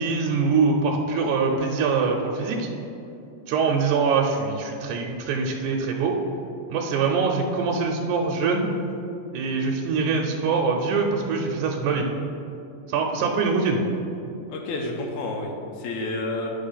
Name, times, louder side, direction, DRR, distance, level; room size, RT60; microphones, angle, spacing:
voice 1, 0.0-2.7 3.5-6.2 6.7-8.7 9.3-12.1 12.9-13.8, right 4 dB, 80° right, 1 dB, 1.9 m, -23 dB
voice 2, 14.5-16.5, left 2 dB, 75° left, 1 dB, 2.1 m, -30 dB
10.0 x 3.5 x 5.6 m, 2.7 s
omnidirectional pair, 3.8 m